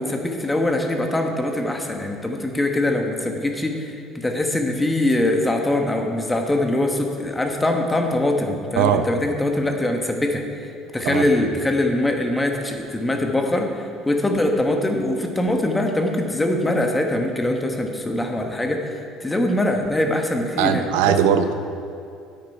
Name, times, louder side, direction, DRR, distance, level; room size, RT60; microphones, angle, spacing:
voice 1, 0.0-10.4 10.9-13.7 14.0-21.1, left 1 dB, 10° left, 3 dB, 1.2 m, -23 dB
voice 2, 8.8-9.1 11.0-11.3 20.6-21.6, right 8 dB, 90° right, 9 dB, 0.6 m, -19 dB
9.8 x 8.4 x 4.8 m, 2.5 s
cardioid pair, 110°, 0 cm